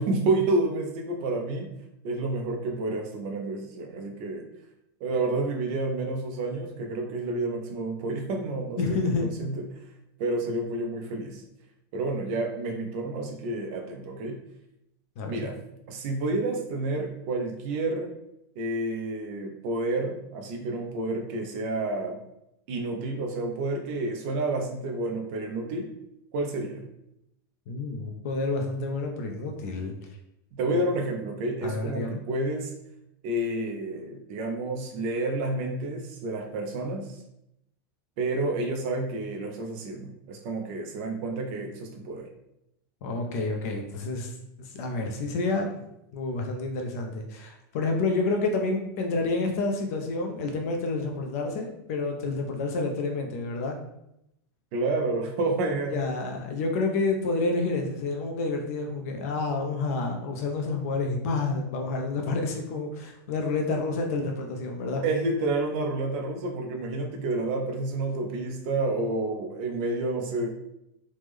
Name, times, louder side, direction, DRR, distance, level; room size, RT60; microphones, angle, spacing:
voice 1, 0.0-1.7 2.0-4.5 5.0-9.6 10.2-11.4 11.9-14.4 15.2-15.6 15.9-18.1 18.6-22.2 22.7-25.9 26.3-26.8 30.5-32.7 33.2-37.1 38.2-42.3 54.7-56.0 65.0-70.5, right 2 dB, 35° right, 3 dB, 0.3 m, -29 dB
voice 2, 8.8-9.3 15.2-15.5 27.7-29.9 30.7-30.8 31.6-32.2 43.0-45.7 46.1-53.8 55.9-65.0, left 3 dB, 40° left, 2 dB, 0.4 m, -29 dB
3.1 x 2.0 x 3.4 m, 0.82 s
supercardioid pair, 180°, 13 cm